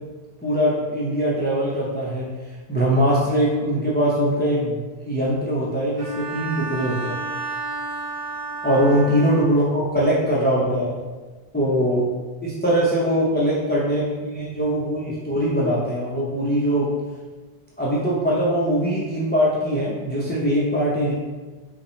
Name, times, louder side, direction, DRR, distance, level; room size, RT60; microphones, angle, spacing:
voice 1, 0.4-2.3 2.7-7.2 8.6-10.9 11.5-12.1 12.4-16.9 17.8-21.1, equal, 10° left, -6 dB, 0.6 m, -22 dB
Bowed string instrument, 6.0-9.7, right 3 dB, 35° right, 1.5 m, -31 dB
5.7 x 2.8 x 3.1 m, 1.3 s
omnidirectional pair, 1.1 m